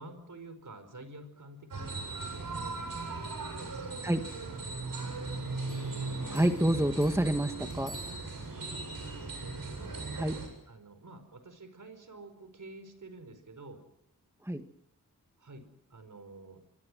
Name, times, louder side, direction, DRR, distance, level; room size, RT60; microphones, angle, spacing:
voice 1, 0.0-5.9 8.6-8.7 9.1-10.2 10.7-13.9 15.4-16.6, right 2 dB, 60° right, 9 dB, 5.3 m, -50 dB
sound 1, 1.7-10.5, right 3 dB, 85° right, 7.9 m, -38 dB
sound 2, 5.7-8.7, left 1 dB, 90° left, 5.7 m, -52 dB
voice 2, 6.3-7.9 10.1-10.4 14.4-14.6, right 1 dB, 10° right, 6 dB, 1.8 m, -28 dB
25.0 x 23.5 x 6.5 m, 0.85 s
cardioid pair, 55°, 34 cm